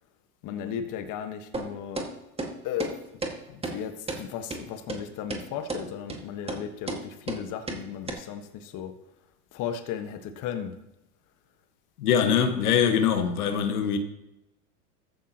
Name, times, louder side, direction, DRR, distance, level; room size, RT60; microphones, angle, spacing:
voice 1, 0.4-2.1 2.6-3.0 3.5-9.0 9.5-10.7, left 9 dB, 40° left, 1.5 m, -35 dB
sound 1, 1.5-1.7 2.0-2.1 2.4-2.5 2.8-2.9 3.2-3.3 3.6-3.8 4.1-4.2 4.5-4.6 4.9-5.0 5.3-5.4 5.7-5.8 6.1-6.2 6.5-6.6 6.9-7.0 7.3-7.4 7.7-7.8 8.1-8.2, right 3 dB, 10° right, 1.9 m, -32 dB
voice 2, 12.0-14.0, left 7 dB, 75° left, 1.5 m, -23 dB
14.5 x 13.0 x 3.0 m
hypercardioid pair, 100°, 46 cm